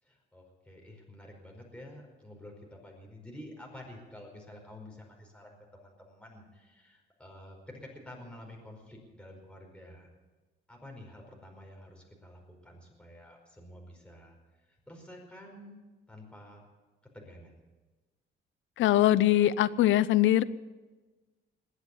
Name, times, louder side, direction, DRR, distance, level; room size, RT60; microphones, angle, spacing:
voice 1, 0.0-10.1 10.7-15.8 16.1-16.6 17.1-17.6, left 1 dB, 5° left, 0 dB, 4.9 m, -50 dB
voice 2, 18.8-20.4, left 13 dB, 80° left, 18 dB, 0.6 m, -22 dB
21.0 x 8.1 x 8.5 m, 1.2 s
cardioid pair, 90°, 20 cm